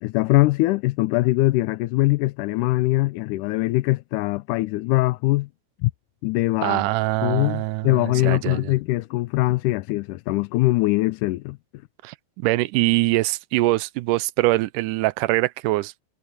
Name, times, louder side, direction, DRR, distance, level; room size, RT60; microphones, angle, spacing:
voice 1, 0.0-5.5 5.8-5.9 6.2-6.8 7.2-11.6, left 19 dB, 90° left, 2.2 m, -22 dB
voice 2, 6.6-8.7 12.0-15.9, right 19 dB, 90° right, 2.2 m, -23 dB
omnidirectional pair, 3.6 m